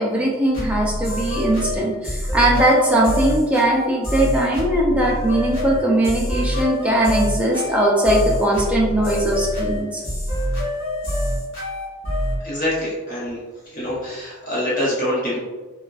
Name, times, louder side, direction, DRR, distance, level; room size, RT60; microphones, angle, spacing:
voice 1, 0.0-10.0, right 1 dB, 5° right, -3 dB, 0.4 m, -19 dB
sound 1, 0.5-12.4, equal, 60° left, 1.2 m, -25 dB
voice 2, 12.4-13.4 13.6-15.4, left 1 dB, 40° left, -7 dB, 0.7 m, -25 dB
3.4 x 2.4 x 2.3 m, 1.2 s
head